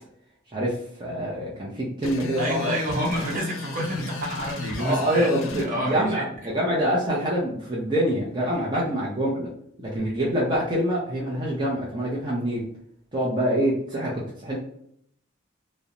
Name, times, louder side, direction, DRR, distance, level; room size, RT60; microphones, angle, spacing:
voice 1, 0.5-2.8 4.8-9.5 9.8-12.7 13.1-14.6, equal, 20° right, -6 dB, 0.6 m, -25 dB
sound 1, 2.0-5.7, left 4 dB, 75° left, 0.5 m, -35 dB
voice 2, 2.4-6.3 10.1-10.2, equal, 45° right, -3 dB, 0.9 m, -29 dB
2.5 x 2.1 x 2.8 m, 0.69 s
head